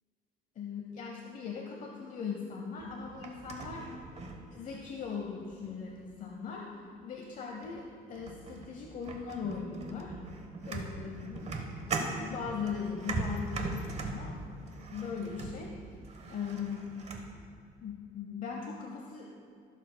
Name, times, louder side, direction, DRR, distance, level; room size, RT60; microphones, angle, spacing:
voice 1, 0.6-3.9 4.5-6.6 7.0-10.2 10.6-15.7 16.3-17.0 17.8-19.3, left 6 dB, 50° left, 0 dB, 0.8 m, -39 dB
sound 1, 2.8-5.0 5.5-5.9 7.0-7.1 7.6-7.8 8.1-17.3, right 3 dB, 40° right, 1.1 m, -40 dB
15.5 x 7.4 x 2.2 m, 2.4 s
cardioid pair, 110°, 17 cm